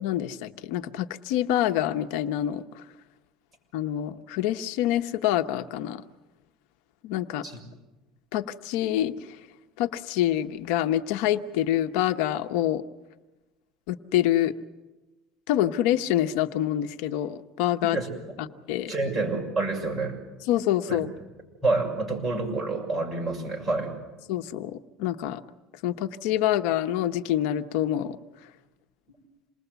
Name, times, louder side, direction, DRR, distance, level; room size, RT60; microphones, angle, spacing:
voice 1, 0.0-2.8 3.7-6.0 7.0-7.5 8.3-9.4 9.8-12.8 13.9-14.5 15.5-18.0 18.7-18.9 20.5-21.1 24.3-25.4 25.8-28.2, left 12 dB, 75° left, 8 dB, 0.9 m, -26 dB
voice 2, 18.9-20.2 20.9-21.0 21.6-23.9, right 3 dB, 15° right, -1 dB, 6.6 m, -28 dB
28.0 x 20.5 x 8.1 m, 1.1 s
cardioid pair, 160°, 0 cm